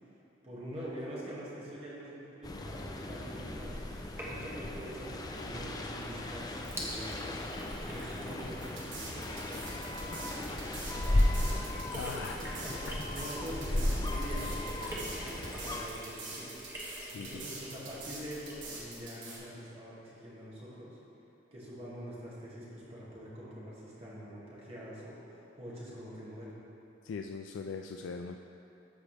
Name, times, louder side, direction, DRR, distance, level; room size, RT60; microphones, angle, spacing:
voice 1, 0.4-11.6 12.1-12.8 13.1-21.0 21.5-26.5, equal, 35° right, -7 dB, 1.9 m, -45 dB
sound 1, 2.4-15.9, left 1 dB, 20° left, 0.5 m, -35 dB
Sink (filling or washing), 3.9-19.0, equal, 15° right, 1.2 m, -47 dB
sound 2, 8.6-19.4, right 3 dB, 75° right, 1.6 m, -45 dB
voice 2, 11.9-12.5 12.8-13.0 17.0-17.4 27.0-28.4, left 5 dB, 85° left, 4 dB, 0.3 m, -40 dB
13.5 x 5.0 x 3.3 m, 2.8 s
head